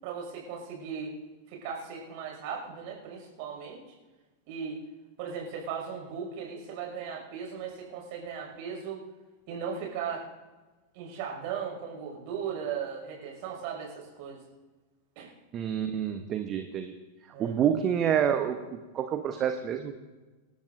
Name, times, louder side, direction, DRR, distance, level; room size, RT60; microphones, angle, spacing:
voice 1, 0.0-1.1 1.5-3.8 4.5-4.8 5.2-9.0 9.5-10.3 10.9-14.4 15.2-15.3 17.3-17.6, right 7 dB, 45° right, 0 dB, 6.0 m, -37 dB
voice 2, 15.5-16.9 17.4-19.9, right 8 dB, 30° right, 7 dB, 1.0 m, -28 dB
27.0 x 12.5 x 2.7 m, 1.2 s
figure-of-eight pair, 90°, 0 cm